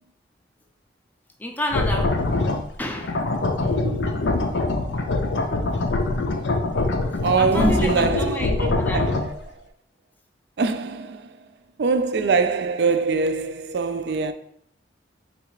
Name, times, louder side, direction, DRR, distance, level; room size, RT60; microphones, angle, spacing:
voice 1, 1.4-2.2 2.8-3.2 7.4-9.1, left 1 dB, 10° left, 0.4 m, -27 dB
sound 1, 1.7-2.7 3.0-9.3, left 2 dB, 70° left, 0.5 m, -24 dB
voice 2, 3.6-4.4 7.2-9.6 10.6-11.4 11.8-14.3, right 4 dB, 60° right, 0.3 m, -24 dB
4.1 x 2.4 x 4.6 m
head